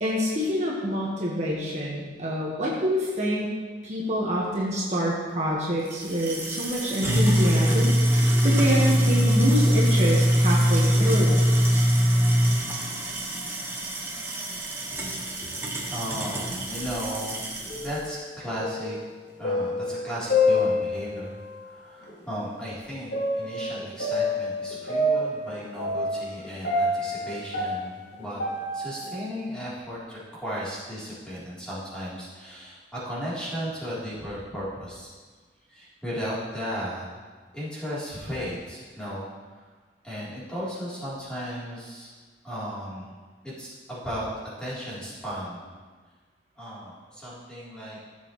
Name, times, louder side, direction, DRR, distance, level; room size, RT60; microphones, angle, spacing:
voice 1, 0.0-3.5 3.8-11.4, equal, 40° right, -5 dB, 1.5 m, -27 dB
sound 1, 5.9-17.9, equal, 15° right, 1.4 m, -23 dB
voice 2, 15.8-19.0 19.4-27.9 28.2-28.4 28.7-35.1 35.7-37.0 37.5-39.7 40.0-42.1 42.4-43.1 43.4-44.3 44.6-45.7 46.6-48.0, equal, 5° left, -9 dB, 3.5 m, -35 dB
sound 2, 17.6-18.2 18.5-21.3 22.0-22.1 23.1-29.1, left 2 dB, 80° left, 2.2 m, -27 dB
15.5 x 7.6 x 3.2 m, 1.4 s
head